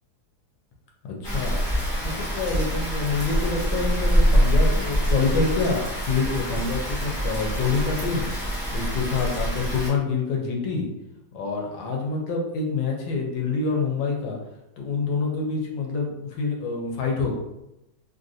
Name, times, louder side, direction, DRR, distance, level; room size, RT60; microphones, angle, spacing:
voice 1, 1.2-1.6 2.0-8.3 8.7-10.9 11.3-14.4 14.8-17.3, left 4 dB, 75° left, 0 dB, 1.3 m, -26 dB
Rain, 1.2-9.9, equal, ahead, 1.1 m, -24 dB
3.2 x 2.5 x 2.6 m, 0.89 s
omnidirectional pair, 2.1 m